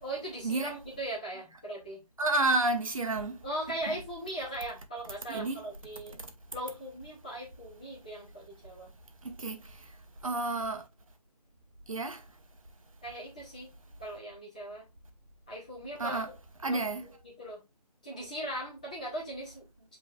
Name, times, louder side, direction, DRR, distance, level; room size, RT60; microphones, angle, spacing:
voice 1, 0.0-2.0 3.4-6.2 6.5-8.9 13.0-13.7 14.0-14.8 15.5-16.2 16.6-17.6 18.0-20.0, right 1 dB, 10° left, 0.8 m, -39 dB
voice 2, 2.2-3.4 3.9-4.0 5.3-5.6 6.2-6.3 9.2-9.9 10.2-10.8 11.9-12.2 16.0-16.3 16.6-17.1, right 2 dB, 55° right, 0.9 m, -30 dB
7.0 x 3.1 x 2.3 m
figure-of-eight pair, 170°, 21 cm